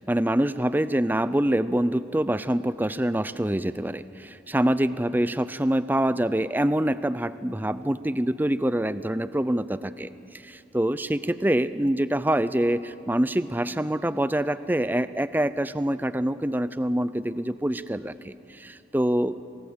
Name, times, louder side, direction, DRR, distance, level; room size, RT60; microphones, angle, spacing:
voice 1, 0.0-10.1 10.4-19.4, right 1 dB, 10° right, 15 dB, 0.5 m, -25 dB
27.0 x 19.5 x 8.0 m, 2.7 s
head